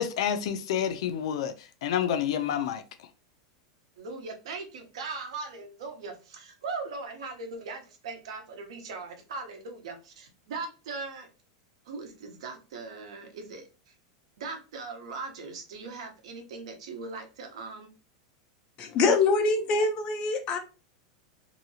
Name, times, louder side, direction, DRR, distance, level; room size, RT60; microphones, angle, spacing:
voice 1, 0.0-1.5 1.8-2.8, left 9 dB, 70° left, 0.5 m, -28 dB
voice 2, 4.0-11.3 11.8-13.9 14.4-17.9, right 4 dB, 85° right, 0.9 m, -39 dB
voice 3, 18.8-20.6, left 3 dB, 30° left, 0.6 m, -24 dB
2.8 x 2.7 x 2.7 m
supercardioid pair, 160°, 3 cm